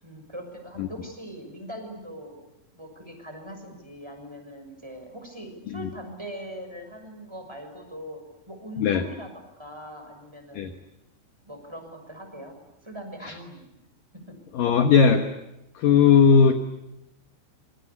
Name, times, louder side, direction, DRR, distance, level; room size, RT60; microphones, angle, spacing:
voice 1, 0.0-2.4 2.8-9.3 9.6-10.7 11.4-12.5 12.8-13.7 14.3-14.4, equal, 5° right, 5 dB, 6.0 m, -41 dB
voice 2, 14.5-15.3 15.8-16.6, left 6 dB, 65° left, 7 dB, 2.4 m, -18 dB
27.5 x 25.0 x 8.4 m, 0.88 s
omnidirectional pair, 5.4 m